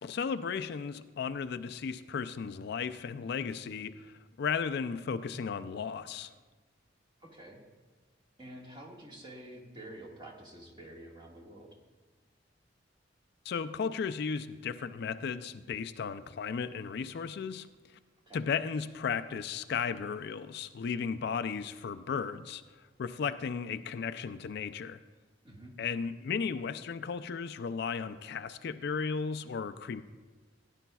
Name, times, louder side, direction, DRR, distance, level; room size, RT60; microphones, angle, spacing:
voice 1, 0.0-6.3 13.5-18.0 18.3-25.0 25.8-30.0, left 6 dB, 60° left, 11 dB, 0.4 m, -35 dB
voice 2, 7.2-7.6 8.4-11.8 18.3-18.5 25.4-25.8, right 1 dB, 25° right, -1 dB, 1.7 m, -48 dB
16.5 x 9.9 x 2.3 m, 1.3 s
head